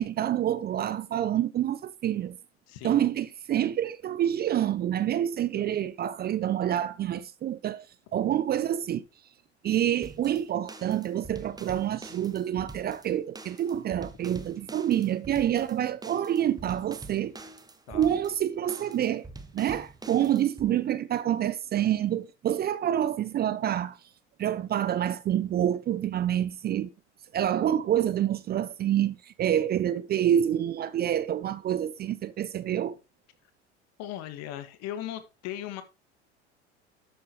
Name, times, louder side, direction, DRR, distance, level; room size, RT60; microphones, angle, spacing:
voice 1, 0.0-2.4 2.8-7.9 8.1-9.0 9.6-17.3 17.9-19.3 19.5-24.0 24.4-26.9 27.3-33.0, right 11 dB, 30° right, 0.7 m, -27 dB
voice 2, 2.7-3.1 5.6-5.7 17.9-18.2 34.0-35.8, left 12 dB, 50° left, 2.0 m, -38 dB
sound 1, 10.0-20.7, right 3 dB, 10° right, 1.4 m, -46 dB
12.5 x 8.7 x 3.2 m
figure-of-eight pair, 75°, 35 cm